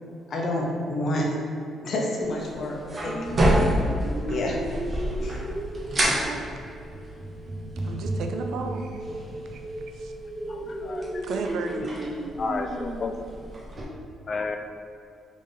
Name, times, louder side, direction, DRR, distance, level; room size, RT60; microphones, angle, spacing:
voice 1, 0.3-1.3 1.8-3.1 3.5-3.7 4.3-4.6 5.2-5.4, left 1 dB, 60° left, -1 dB, 0.9 m, -28 dB
sound 1, 2.2-13.8, right 1 dB, 35° right, 1.0 m, -30 dB
sound 2, 3.1-13.1, right 1 dB, 20° right, 0.6 m, -35 dB
voice 2, 6.0-6.5 7.8-9.0 9.5-9.6 9.9-10.1 11.2-11.9, right 4 dB, 75° right, 4 dB, 0.4 m, -34 dB
voice 3, 10.5-11.3 12.4-13.3 14.3-14.6, left 3 dB, 45° left, 5 dB, 0.4 m, -32 dB
3.6 x 3.5 x 4.0 m, 2.5 s
cardioid pair, 90°, 0 cm